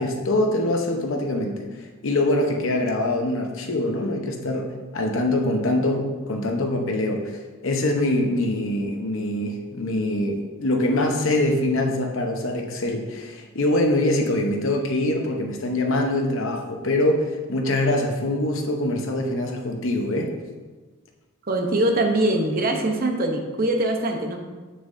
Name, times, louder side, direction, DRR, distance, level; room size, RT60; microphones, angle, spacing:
voice 1, 0.0-1.6 2.0-4.7 4.9-7.3 7.6-17.2 17.5-20.3, left 1 dB, 65° left, 2 dB, 0.9 m, -24 dB
voice 2, 21.5-24.4, right 1 dB, 40° right, 3 dB, 0.7 m, -22 dB
7.3 x 6.7 x 2.6 m, 1.3 s
head